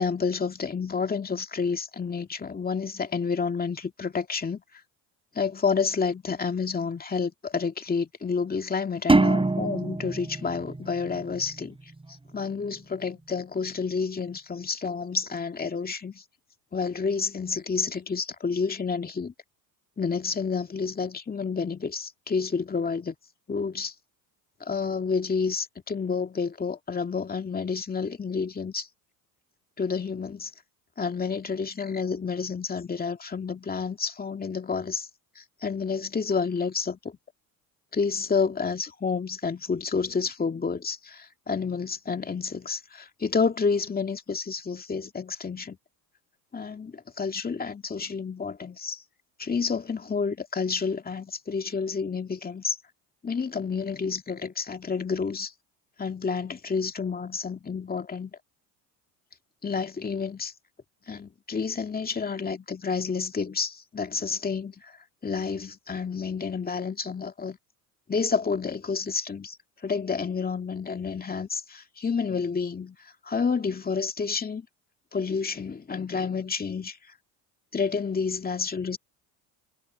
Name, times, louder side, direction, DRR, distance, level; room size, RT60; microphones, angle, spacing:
voice 1, 0.0-4.6 5.3-11.8 12.3-16.2 16.7-19.3 20.0-23.2 23.5-23.9 24.6-28.9 29.8-30.5 31.0-35.1 35.4-37.2 37.9-45.8 46.5-49.0 49.4-52.8 53.2-55.5 56.0-58.4 59.6-60.5 61.1-65.0 65.2-67.6 68.1-69.6 69.8-73.0 73.2-74.7 75.1-77.0 77.7-79.0, left 5 dB, 20° left, 2.2 m, -29 dB
sound 1, 9.1-11.7, right 2 dB, 15° right, 4.1 m, -24 dB
supercardioid pair, 85°, 42 cm